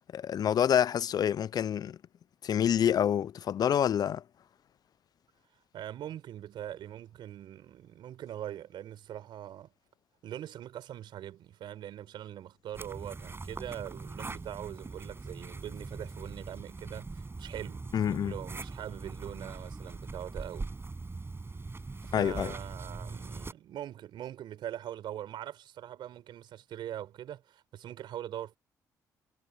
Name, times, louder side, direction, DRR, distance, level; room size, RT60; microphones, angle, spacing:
voice 1, 0.1-2.0 2.4-4.2 17.9-18.3 22.1-22.5, left 9 dB, 50° left, 0.4 m, -27 dB
voice 2, 5.7-9.7 10.2-17.9 18.2-20.7 22.1-28.6, right 11 dB, 65° right, 4.2 m, -42 dB
sound 1, 12.7-23.5, right 3 dB, 30° right, 5.9 m, -42 dB
hypercardioid pair, 45°, 9 cm